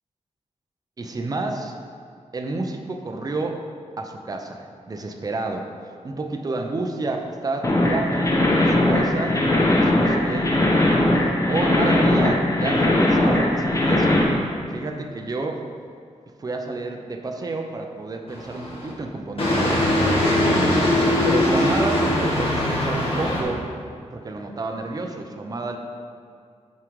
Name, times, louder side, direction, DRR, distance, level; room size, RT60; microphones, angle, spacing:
voice 1, 1.0-1.8 2.3-3.6 4.0-10.6 11.4-14.2 14.7-15.6 16.4-20.3 21.2-23.7 24.1-25.8, right 3 dB, 30° right, 3 dB, 0.6 m, -30 dB
sound 1, 7.6-14.2, left 1 dB, 25° left, 1.1 m, -19 dB
sound 2, 18.3-18.9 19.4-23.4, left 1 dB, 50° left, 1.9 m, -21 dB
9.4 x 5.0 x 4.7 m, 2.2 s
wide cardioid pair, 160°, 12 cm